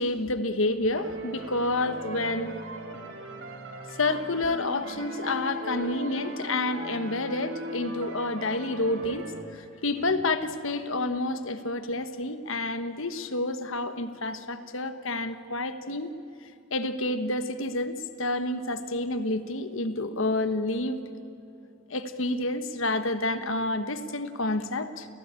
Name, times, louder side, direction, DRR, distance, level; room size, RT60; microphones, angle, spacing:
voice 1, 0.0-2.6 4.0-16.1 16.7-21.0 21.9-25.1, left 2 dB, 65° left, 10 dB, 1.3 m, -29 dB
sound 1, 0.9-9.4, right 1 dB, 65° right, 3.4 m, -39 dB
29.0 x 17.5 x 9.0 m, 2.9 s
head